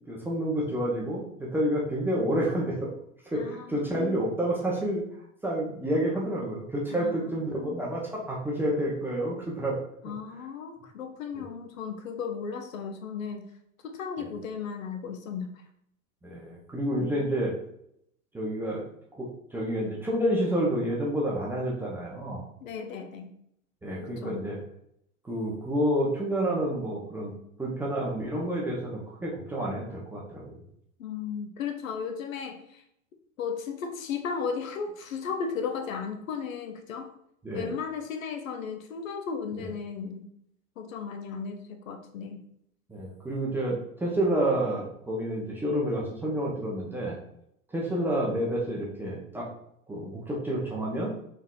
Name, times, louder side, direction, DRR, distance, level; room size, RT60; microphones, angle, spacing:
voice 1, 0.1-2.9 3.3-5.0 5.4-9.8 11.4-11.5 16.2-17.5 18.3-18.8 19.1-22.4 23.8-24.6 25.2-27.3 27.6-30.6 37.4-37.7 39.6-39.7 42.9-47.2 47.7-49.5 49.9-51.1, right 1 dB, 5° right, -5 dB, 0.5 m, -29 dB
voice 2, 3.3-4.2 6.9-7.8 10.0-13.4 13.8-15.5 17.0-17.2 22.6-23.3 24.0-24.4 31.0-32.8 33.4-37.1 37.5-40.3 40.8-42.4, left 6 dB, 70° left, 5 dB, 0.6 m, -35 dB
3.6 x 3.4 x 2.3 m, 0.74 s
figure-of-eight pair, 90°, 42 cm